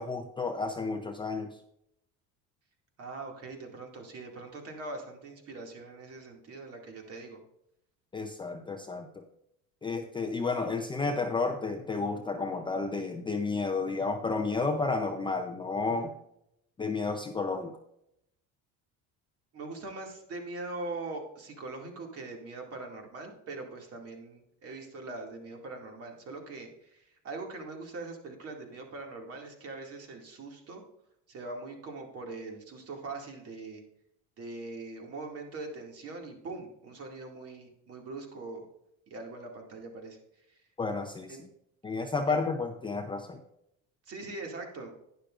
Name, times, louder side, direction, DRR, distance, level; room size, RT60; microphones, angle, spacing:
voice 1, 0.0-1.6 8.1-9.2 9.8-16.1 16.8-17.7 40.8-41.4 41.8-43.4, left 3 dB, 15° left, 4 dB, 0.5 m, -31 dB
voice 2, 3.0-7.4 19.5-30.8 31.3-33.8 34.4-38.7 39.1-40.2 40.5-40.6 41.3-41.4 42.3-42.4 44.1-44.9, right 3 dB, 40° right, 2 dB, 2.2 m, -42 dB
11.5 x 10.5 x 2.5 m, 0.78 s
cardioid pair, 155°, 35 cm